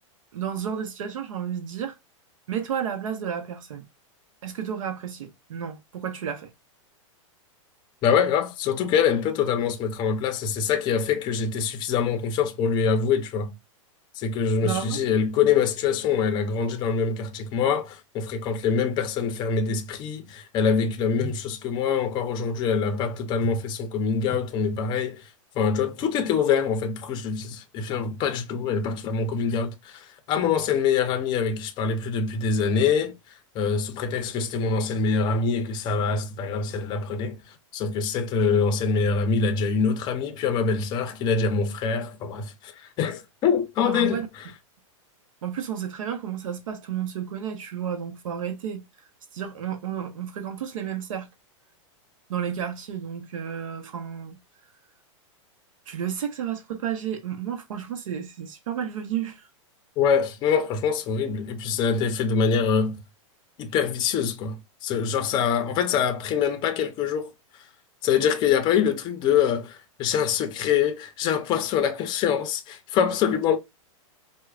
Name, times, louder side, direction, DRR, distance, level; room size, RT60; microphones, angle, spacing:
voice 1, 0.3-2.0 2.5-3.8 4.4-6.5 14.6-15.1 43.8-44.3 45.4-48.8 49.3-51.3 52.3-54.4 55.9-59.5, right 8 dB, 80° right, 0.8 m, -32 dB
voice 2, 8.0-13.5 14.2-25.3 25.6-33.1 33.5-37.4 37.7-44.5 60.0-63.0 63.6-67.3 68.0-73.6, left 6 dB, 25° left, 0.5 m, -24 dB
4.4 x 2.1 x 2.3 m
hypercardioid pair, 145°, 17 cm